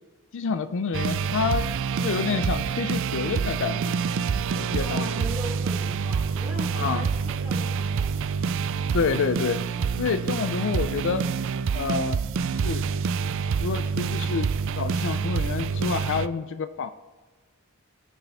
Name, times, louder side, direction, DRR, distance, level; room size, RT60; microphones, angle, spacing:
voice 1, 0.3-1.7 2.0-4.0 4.6-5.1 6.7-7.1 8.9-9.6 10.0-11.3 11.7-12.2 12.5-12.8 13.6-14.5 14.8-16.9, left 5 dB, 65° left, 12 dB, 0.4 m, -28 dB
sound 1, 0.9-16.3, right 6 dB, 65° right, 0.4 m, -27 dB
voice 2, 4.7-8.2, equal, 5° right, -5 dB, 3.2 m, -39 dB
18.0 x 6.0 x 3.4 m, 1.3 s
head